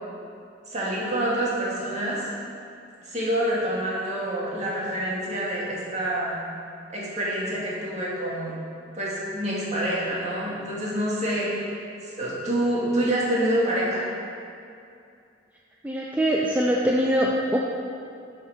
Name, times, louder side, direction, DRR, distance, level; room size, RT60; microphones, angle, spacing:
voice 1, 0.7-2.2 3.0-6.4 6.9-8.6 9.0-11.8 12.0-14.0, right 1 dB, 40° right, -6 dB, 2.0 m, -27 dB
voice 2, 15.8-17.6, equal, 10° right, -3 dB, 0.4 m, -23 dB
10.5 x 4.5 x 4.9 m, 2.5 s
head